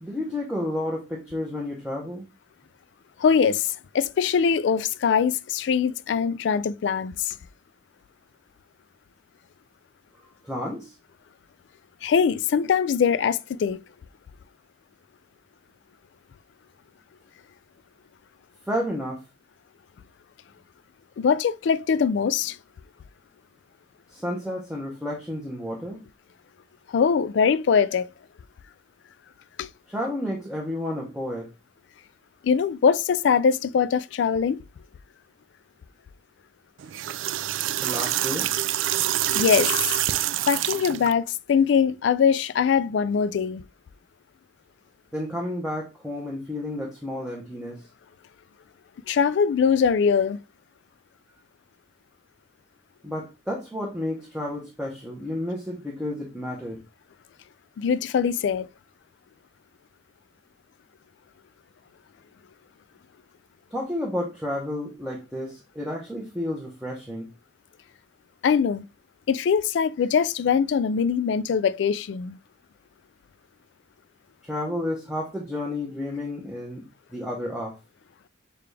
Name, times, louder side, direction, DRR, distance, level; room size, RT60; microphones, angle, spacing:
voice 1, 0.0-2.2 10.4-10.9 18.7-19.2 24.1-26.0 29.9-31.5 37.8-38.5 45.1-47.8 53.0-56.8 63.7-67.3 74.4-76.9 77.1-77.8, left 1 dB, 5° right, 0.8 m, -31 dB
voice 2, 3.2-7.3 12.0-13.8 21.2-22.6 26.9-28.1 29.6-29.7 32.4-34.6 39.3-40.0 40.5-43.6 49.1-50.4 57.8-58.7 68.4-68.8 69.3-72.4, left 6 dB, 70° left, 0.3 m, -22 dB
sound 1, 36.8-41.1, right 13 dB, 85° right, 0.3 m, -26 dB
6.7 x 2.4 x 3.2 m
head